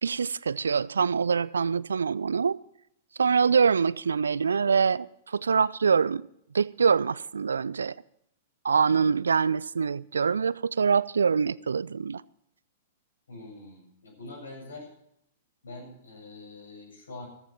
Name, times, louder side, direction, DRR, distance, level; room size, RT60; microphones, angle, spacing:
voice 1, 0.0-2.6 3.2-6.3 6.5-7.9 8.6-12.2, right 6 dB, 70° right, 0.4 m, -24 dB
voice 2, 13.3-14.9 15.6-17.3, left 2 dB, 70° left, 7.6 m, -44 dB
14.5 x 14.5 x 4.3 m
figure-of-eight pair, 105°, 0 cm